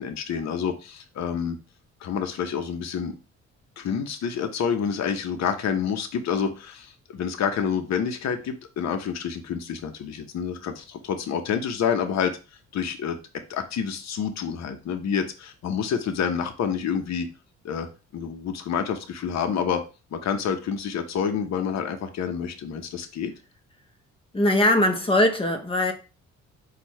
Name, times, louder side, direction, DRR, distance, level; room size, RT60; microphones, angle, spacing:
voice 1, 0.0-1.6 2.0-3.1 3.8-12.3 12.7-13.2 13.5-17.3 17.6-19.8 20.1-23.3, left 7 dB, 60° left, 0.8 m, -28 dB
voice 2, 24.3-25.9, left 1 dB, 20° left, 0.9 m, -21 dB
4.5 x 2.4 x 4.2 m
cardioid pair, 90°, 30 cm